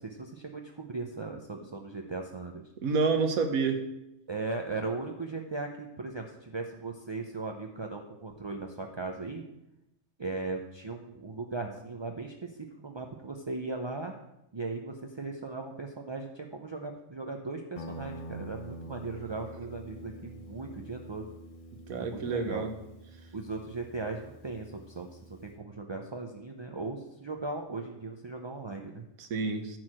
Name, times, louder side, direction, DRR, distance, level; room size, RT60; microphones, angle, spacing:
voice 1, 0.0-2.7 4.3-9.4 10.2-12.5 12.8-14.1 14.5-21.3 22.0-22.7 23.3-29.1, right 3 dB, 40° right, 2 dB, 0.4 m, -38 dB
voice 2, 2.8-3.8 21.9-22.7 29.2-29.8, right 4 dB, 90° right, 6 dB, 1.5 m, -28 dB
Guitar, 17.8-25.6, equal, 30° left, 0.7 m, -46 dB
10.0 x 4.7 x 7.5 m, 0.88 s
omnidirectional pair, 1.4 m